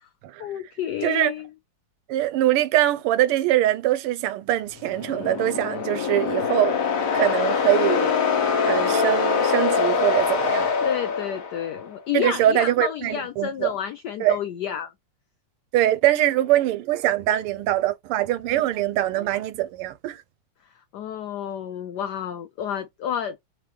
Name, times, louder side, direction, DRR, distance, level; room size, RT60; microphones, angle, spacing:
voice 1, 0.4-1.5 10.8-14.9 20.7-23.5, left 9 dB, 85° left, 0.9 m, -30 dB
voice 2, 2.1-6.8 7.1-8.4 8.7-10.7 12.1-13.7 14.2-14.4 15.7-20.2, right 14 dB, 85° right, 1.5 m, -23 dB
sound 1, 4.8-11.9, left 6 dB, 50° left, 1.0 m, -24 dB
3.7 x 3.1 x 3.2 m
omnidirectional pair, 2.4 m